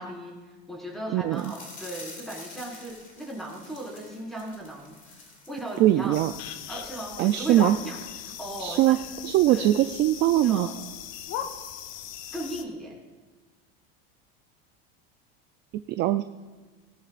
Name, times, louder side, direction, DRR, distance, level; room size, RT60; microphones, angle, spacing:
voice 1, 0.0-6.2 6.7-9.0 9.5-9.7 10.4-10.7 12.3-12.9, right 1 dB, ahead, -4 dB, 4.7 m, -37 dB
voice 2, 1.1-1.5 5.8-6.3 7.2-7.8 8.6-9.0 9.2-10.7 15.9-16.2, right 13 dB, 35° right, 10 dB, 0.4 m, -21 dB
sound 1, 1.3-6.4 6.7-6.8 7.2-7.3, left 3 dB, 25° left, 2.4 m, -47 dB
sound 2, 6.1-12.6, left 10 dB, 55° left, 1.1 m, -38 dB
18.5 x 18.0 x 2.5 m, 1.3 s
supercardioid pair, 145°, 31 cm